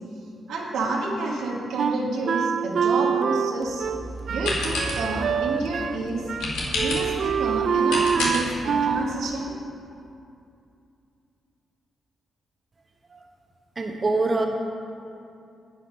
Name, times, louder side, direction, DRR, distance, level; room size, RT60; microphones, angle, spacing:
voice 1, 0.5-3.9 4.3-6.2 6.8-9.5, right 3 dB, 85° right, -2 dB, 1.5 m, -29 dB
Wind instrument woodwind instrument, 1.8-6.0 6.3-6.5 6.7-9.1, right 7 dB, 65° right, 0.4 m, -25 dB
sound 1, 3.6-9.2, left 1 dB, 90° left, 1.9 m, -31 dB
voice 2, 13.8-14.5, right 3 dB, 40° right, 1 dB, 1.1 m, -24 dB
9.9 x 7.9 x 5.3 m, 2.6 s
cardioid pair, 65°, 0 cm